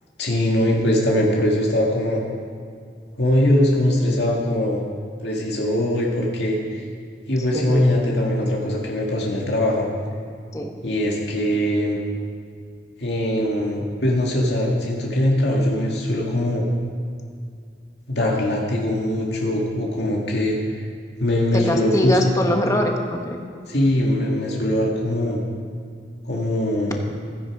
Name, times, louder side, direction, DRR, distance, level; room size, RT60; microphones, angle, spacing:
voice 1, 0.2-2.2 3.2-4.8 5.2-6.9 7.3-9.9 10.8-12.0 13.0-16.6 18.1-20.6 21.2-22.2 23.7-25.4 26.3-27.0, left 1 dB, 75° left, -2 dB, 2.0 m, -21 dB
voice 2, 7.5-7.9 10.5-10.7 21.5-23.4, left 1 dB, 15° left, 2 dB, 1.2 m, -23 dB
15.5 x 13.0 x 4.9 m, 2.2 s
head